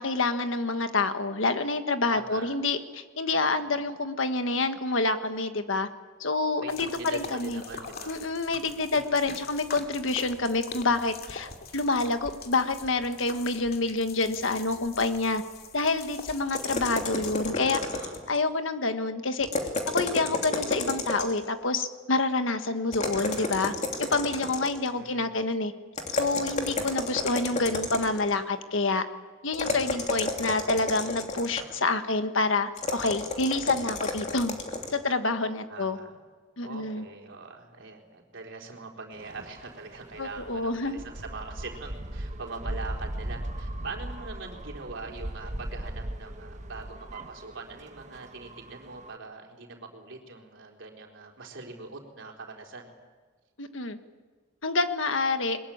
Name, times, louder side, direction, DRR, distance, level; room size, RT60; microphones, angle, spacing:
voice 1, 0.0-5.9 6.2-7.6 8.0-15.4 15.7-17.8 18.3-19.5 19.9-23.7 24.0-25.7 26.1-29.1 29.4-34.5 34.9-36.0 36.6-37.0 40.2-41.0 53.6-54.0 54.6-55.6, left 3 dB, 75° left, 8 dB, 1.5 m, -27 dB
voice 2, 2.1-2.6 3.3-3.8 6.6-8.9 17.1-18.1 24.7-25.4 35.7-36.2 36.6-52.9, right 3 dB, 65° right, 1 dB, 4.1 m, -43 dB
sound 1, 6.7-17.5, left 4 dB, 50° left, 2.4 m, -44 dB
sound 2, 16.5-18.4 19.4-21.5 22.9-24.9 25.9-28.3 29.5-31.8 32.8-35.0, left 3 dB, 35° left, 3.0 m, -31 dB
sound 3, 39.1-49.2, right 1 dB, 35° right, 1.2 m, -39 dB
22.0 x 21.5 x 8.8 m, 1.4 s
head